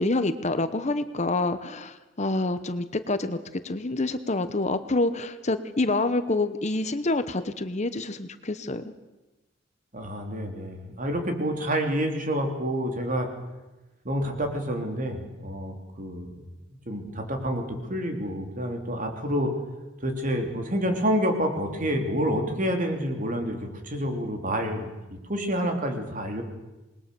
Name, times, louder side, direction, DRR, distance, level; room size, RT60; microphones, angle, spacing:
voice 1, 0.0-3.4 3.6-8.9, left 2 dB, 35° left, 11 dB, 1.0 m, -27 dB
voice 2, 9.9-13.3 14.1-16.3 16.9-19.5 20.0-26.4, equal, 45° right, 4 dB, 3.4 m, -28 dB
27.0 x 20.5 x 7.0 m, 1.1 s
head